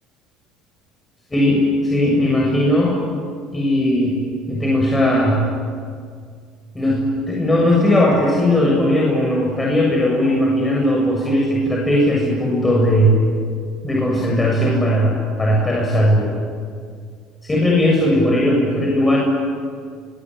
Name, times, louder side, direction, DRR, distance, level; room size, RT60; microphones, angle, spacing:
voice 1, 1.3-3.0 3.5-4.2 4.5-5.5 6.7-13.2 13.8-16.3 17.4-19.2, left 1 dB, 15° left, -3 dB, 7.4 m, -17 dB
24.5 x 18.0 x 9.9 m, 2.1 s
supercardioid pair, 80°, 0 cm